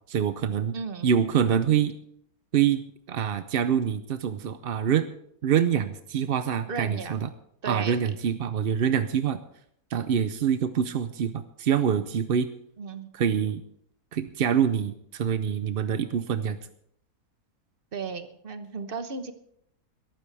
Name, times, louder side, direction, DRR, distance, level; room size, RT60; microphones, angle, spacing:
voice 1, 0.1-0.7 1.0-1.9 2.5-2.8 3.1-5.1 5.4-7.3 7.7-9.4 9.9-12.5 13.1-13.6 14.1-16.6, right 8 dB, 60° right, 11 dB, 0.6 m, -25 dB
voice 2, 0.7-1.1 6.7-7.2 7.6-8.2 12.8-13.1 17.9-19.3, right 5 dB, 40° right, 9 dB, 1.1 m, -35 dB
22.0 x 12.5 x 3.4 m, 0.70 s
omnidirectional pair, 1.6 m